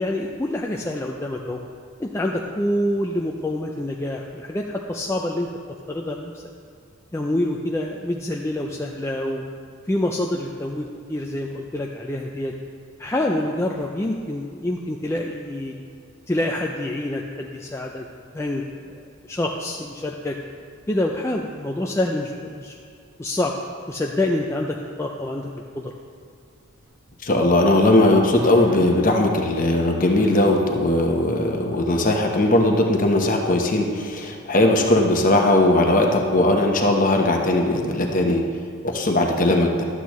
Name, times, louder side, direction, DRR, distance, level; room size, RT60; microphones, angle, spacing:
voice 1, 0.0-1.6 2.0-5.5 5.9-6.4 7.1-9.4 9.8-12.5 13.0-15.7 16.3-18.1 18.3-18.6 18.9-19.0 19.3-20.4 20.9-22.8 23.2-23.5 23.9-25.5 25.8-25.9, left 1 dB, 15° left, 0 dB, 0.3 m, -26 dB
sound 1, 26.8-26.9 28.2-29.4 30.0-30.7 32.6-32.7, right 2 dB, 70° right, 0.8 m, -40 dB
voice 2, 27.2-38.4 38.8-39.8, left 1 dB, 40° left, 2 dB, 0.9 m, -19 dB
12.0 x 8.2 x 3.1 m, 2.3 s
head